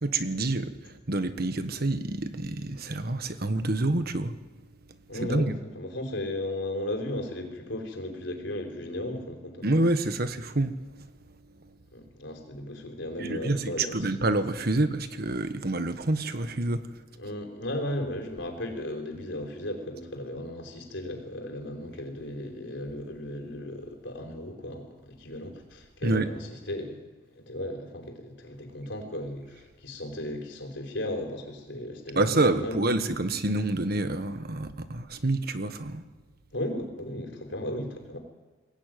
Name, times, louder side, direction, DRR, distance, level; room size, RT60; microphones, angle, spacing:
voice 1, 0.0-4.3 5.2-5.6 9.6-10.7 13.2-16.8 26.0-26.3 32.1-36.0, right 2 dB, 55° right, 1.5 m, -27 dB
voice 2, 5.1-9.6 11.9-14.1 17.2-27.0 27.3-32.8 36.5-38.2, left 1 dB, 70° left, 4.7 m, -35 dB
22.5 x 17.0 x 9.4 m
head